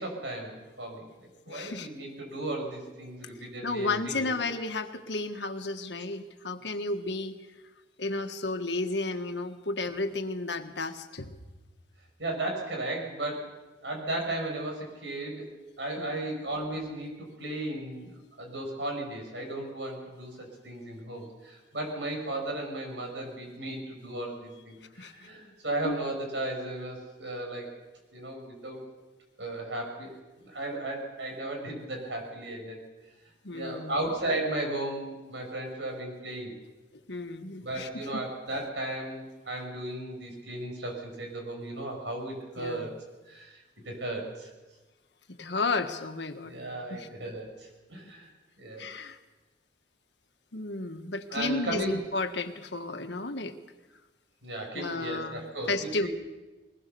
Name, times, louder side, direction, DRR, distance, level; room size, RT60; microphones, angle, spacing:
voice 1, 0.0-4.3 12.2-13.6 13.8-15.5 15.8-18.1 18.4-27.7 28.1-28.9 29.4-32.8 33.5-36.6 37.6-42.9 43.2-44.5 46.4-48.3 48.6-48.9 51.3-52.0 54.4-56.1, right 1 dB, 80° right, 2 dB, 6.5 m, -35 dB
voice 2, 1.5-1.9 3.6-7.4 8.0-11.3 16.0-16.2 25.0-25.3 25.8-26.0 33.4-34.1 37.1-38.2 42.6-42.9 45.3-46.5 46.9-47.1 48.8-49.2 50.5-53.5 54.7-55.4 55.7-56.1, left 3 dB, 75° left, 7 dB, 1.5 m, -33 dB
21.5 x 20.0 x 6.9 m, 1.2 s
head